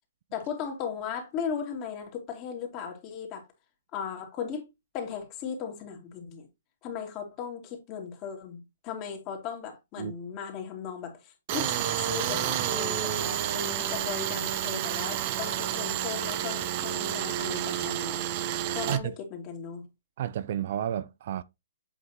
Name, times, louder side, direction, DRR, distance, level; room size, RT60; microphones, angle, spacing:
voice 1, 0.3-3.4 3.9-4.7 4.9-6.5 6.8-18.3 18.7-19.9, left 7 dB, 30° left, 2.5 m, -37 dB
Tools, 11.5-19.0, right 11 dB, 35° right, 0.9 m, -30 dB
voice 2, 20.2-21.4, right 10 dB, 50° right, 0.4 m, -31 dB
8.1 x 5.6 x 3.0 m
hypercardioid pair, 145°, 0 cm